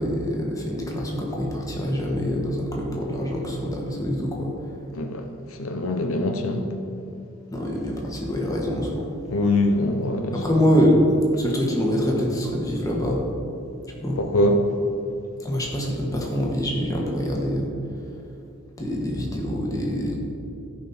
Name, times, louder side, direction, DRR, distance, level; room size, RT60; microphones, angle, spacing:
voice 1, 0.0-4.5 7.5-9.2 10.3-11.0 11.3-13.2 14.0-14.2 15.4-17.7 18.8-20.2, equal, 15° left, -2 dB, 1.4 m, -25 dB
voice 2, 4.9-5.2 5.6-6.7 9.3-10.3 14.2-14.6, left 1 dB, 75° left, 5 dB, 0.8 m, -23 dB
15.0 x 5.3 x 4.3 m, 2.6 s
head